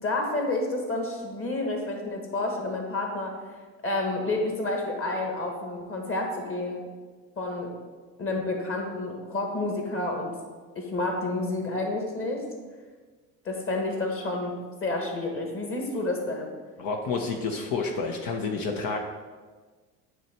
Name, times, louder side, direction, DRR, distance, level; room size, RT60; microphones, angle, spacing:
voice 1, 0.0-3.3 3.8-6.8 7.4-7.7 8.2-10.3 10.7-12.4 13.4-14.5 14.8-16.5, left 2 dB, 30° left, 2 dB, 1.6 m, -29 dB
voice 2, 16.8-19.0, left 4 dB, 50° left, 3 dB, 0.9 m, -29 dB
9.0 x 3.2 x 4.5 m, 1.4 s
hypercardioid pair, 70°, 45 cm